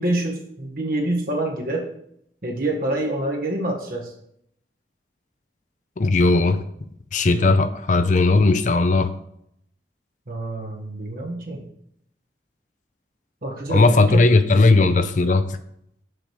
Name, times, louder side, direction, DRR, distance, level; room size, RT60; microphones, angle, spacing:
voice 1, 0.0-1.9 2.4-4.1 7.4-7.6 10.3-11.6 13.4-14.2, right 1 dB, 55° right, 0 dB, 1.8 m, -26 dB
voice 2, 6.0-6.6 7.1-9.1 13.7-15.6, left 3 dB, 45° left, 11 dB, 0.5 m, -17 dB
6.5 x 5.0 x 6.5 m, 0.73 s
head